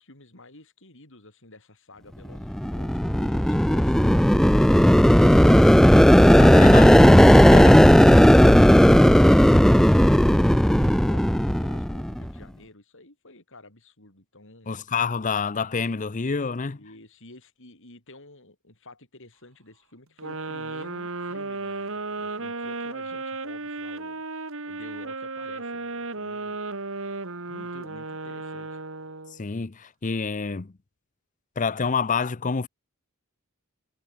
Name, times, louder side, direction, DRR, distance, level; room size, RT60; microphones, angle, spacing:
voice 1, 0.0-5.9 7.5-14.7 16.7-24.2 24.7-26.6 27.4-28.8, left 2 dB, 60° left, 6.8 m, -50 dB
sound 1, 2.4-12.2, equal, ahead, 0.3 m, -15 dB
voice 2, 6.4-7.8 14.7-16.8 29.4-30.7 31.6-32.7, left 5 dB, 35° left, 0.6 m, -27 dB
sound 2, 20.2-29.4, right 3 dB, 60° right, 2.5 m, -34 dB
head